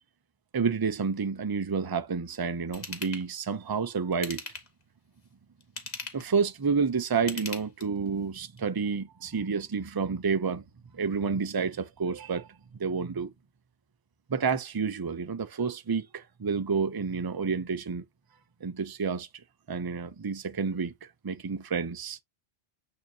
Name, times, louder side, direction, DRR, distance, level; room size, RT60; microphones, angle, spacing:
voice 1, 0.5-4.4 6.1-10.6 10.9-12.5 12.8-13.3 14.3-18.0 18.6-19.3 19.7-22.2, right 5 dB, 25° right, 0.6 m, -29 dB
Ratchet pawl / Tools, 2.7-3.2 4.1-4.8 5.6-6.3 7.2-8.1 8.6-8.7, left 4 dB, 40° left, 1.3 m, -39 dB
8.8 x 3.8 x 2.8 m
omnidirectional pair, 1.2 m